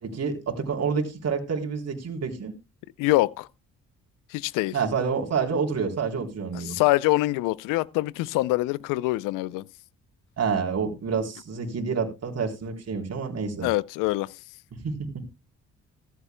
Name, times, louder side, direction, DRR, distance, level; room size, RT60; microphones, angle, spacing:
voice 1, 0.0-2.5 4.7-6.8 10.4-13.7 14.8-15.2, right 5 dB, 50° right, 3.7 m, -28 dB
voice 2, 3.0-3.5 4.3-4.8 6.5-9.7 13.6-14.4, left 19 dB, 80° left, 0.6 m, -25 dB
15.5 x 14.5 x 2.2 m
hypercardioid pair, 55°, 32 cm